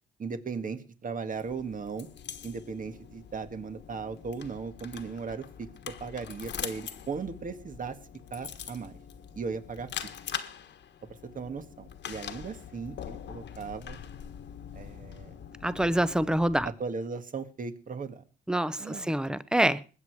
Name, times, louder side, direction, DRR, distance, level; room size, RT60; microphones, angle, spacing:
voice 1, 0.2-2.1 2.4-8.0 8.3-9.0 9.4-9.9 11.2-14.0 14.7-15.3 16.6-18.2 18.8-19.1, right 5 dB, 45° right, 1.8 m, -37 dB
sound 1, 1.3-16.7, left 8 dB, 65° left, 1.5 m, -43 dB
voice 2, 15.6-16.7 18.5-19.8, right 1 dB, 5° right, 0.9 m, -26 dB
21.0 x 8.1 x 4.8 m
cardioid pair, 90°, 20 cm